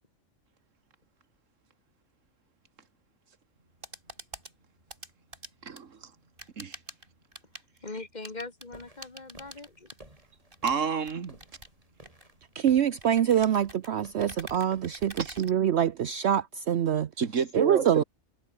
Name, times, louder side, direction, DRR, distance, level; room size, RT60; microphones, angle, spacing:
sound 1, 3.6-16.2, right 1 dB, 45° right, 6.8 m, -48 dB
voice 1, 5.6-6.1 6.6-6.8 10.6-11.4 15.2-15.3 17.2-18.0, right 6 dB, 80° right, 2.0 m, -29 dB
voice 2, 7.8-9.9, left 3 dB, 35° left, 2.4 m, -41 dB
sound 2, 8.7-15.1, right 1 dB, 30° right, 5.0 m, -56 dB
voice 3, 12.5-17.1 17.5-18.0, right 9 dB, 65° right, 1.0 m, -25 dB
omnidirectional pair, 1.3 m